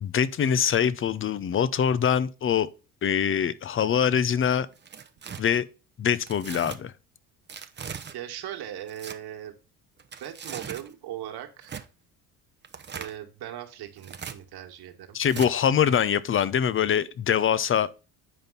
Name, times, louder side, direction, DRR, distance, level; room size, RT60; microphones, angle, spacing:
voice 1, 0.0-2.7 3.0-4.7 5.4-5.7 6.0-6.9 15.1-17.9, left 8 dB, 30° left, 0.7 m, -24 dB
Tearing, 4.7-5.4 6.3-6.8 7.5-8.2 8.8-9.2 10.0-10.9 11.6-11.9 12.6-13.2 14.0-14.4 15.3-15.5, right 7 dB, 25° right, 0.8 m, -39 dB
voice 2, 8.1-9.5 10.2-11.8 12.9-15.2, right 11 dB, 55° right, 1.8 m, -39 dB
8.9 x 5.2 x 3.9 m
hypercardioid pair, 60°, 46 cm